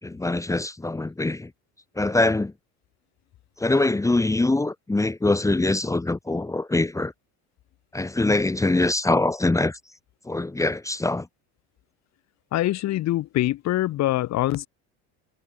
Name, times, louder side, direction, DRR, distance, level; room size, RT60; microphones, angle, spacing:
voice 1, 0.0-1.5 2.0-2.5 3.6-7.1 7.9-9.8 10.3-11.3, left 2 dB, 10° left, 2.1 m, -23 dB
voice 2, 12.5-14.7, left 15 dB, 55° left, 4.9 m, -24 dB
supercardioid pair, 110°, 33 cm